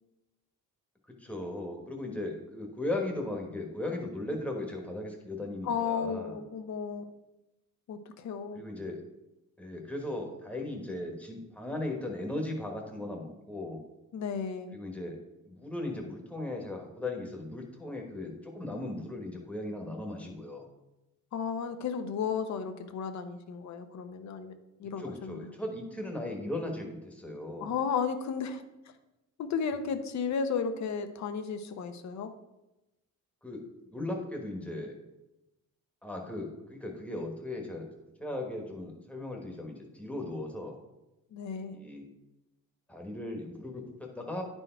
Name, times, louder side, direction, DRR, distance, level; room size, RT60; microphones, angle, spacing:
voice 1, 1.2-6.4 8.5-9.0 9.6-13.8 14.7-15.2 15.4-20.7 25.0-27.7 33.4-35.0 36.0-37.9 38.2-40.8 41.7-42.0 42.9-44.4, left 1 dB, 5° left, 1 dB, 1.2 m, -37 dB
voice 2, 5.6-7.1 7.9-8.6 14.1-14.7 21.3-24.5 24.8-25.4 27.6-28.6 29.4-32.3 41.3-41.7, left 6 dB, 55° left, 9 dB, 0.8 m, -33 dB
10.5 x 4.5 x 4.4 m, 0.97 s
cardioid pair, 160°, 34 cm